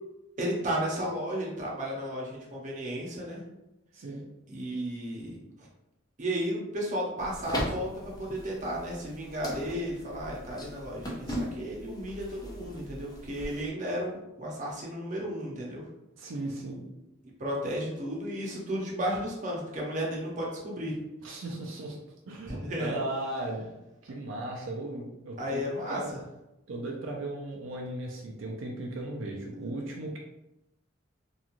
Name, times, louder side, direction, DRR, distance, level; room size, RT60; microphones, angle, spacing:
voice 1, 0.4-3.4 4.5-5.3 5.6-5.7 6.2-15.9 17.4-21.0 22.5-23.0 25.4-26.0, equal, 40° right, -3 dB, 0.7 m, -33 dB
voice 2, 3.9-4.2 16.2-16.9 21.2-22.0 22.3-23.7 24.0-25.6 25.9-26.1 26.7-30.2, right 1 dB, 80° right, -1 dB, 0.4 m, -36 dB
sound 1, 7.2-13.7, equal, 20° left, 0.5 m, -39 dB
3.0 x 2.3 x 2.4 m, 0.92 s
head